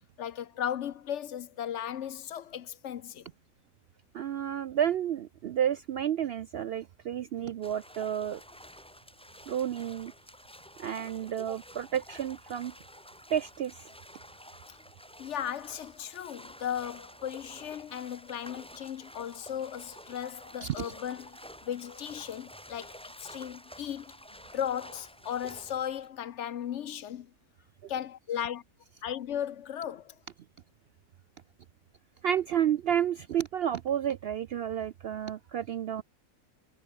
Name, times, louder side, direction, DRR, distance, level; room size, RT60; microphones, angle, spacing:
voice 1, 0.2-3.3 14.7-14.8 15.2-22.9 23.2-24.2 24.5-27.3 27.9-28.6 29.0-30.2, left 10 dB, 60° left, 0.9 m, -36 dB
voice 2, 4.1-8.4 9.5-10.1 10.8-12.7 13.3-13.9 20.6-20.9 32.2-36.0, right 9 dB, 65° right, 0.6 m, -31 dB
sound 1, 7.6-26.1, equal, 5° left, 3.1 m, -50 dB
omnidirectional pair, 1.5 m